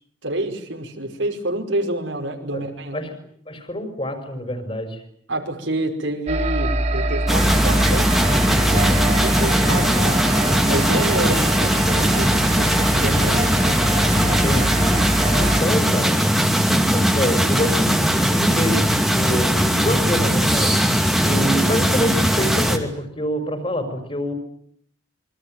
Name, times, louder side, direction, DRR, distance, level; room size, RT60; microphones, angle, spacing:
voice 1, 0.2-3.0 5.3-8.1 8.5-10.2 10.6-13.6, right 1 dB, 80° right, 4 dB, 5.4 m, -28 dB
voice 2, 3.5-5.0 14.2-15.0 15.3-16.2 16.7-20.8 21.2-24.3, equal, 30° left, 8 dB, 5.7 m, -26 dB
sound 1, 6.3-15.6, right 1 dB, 35° right, 1.9 m, -24 dB
sound 2, 7.3-22.8, equal, ahead, 2.6 m, -19 dB
27.0 x 24.0 x 9.2 m, 0.65 s
head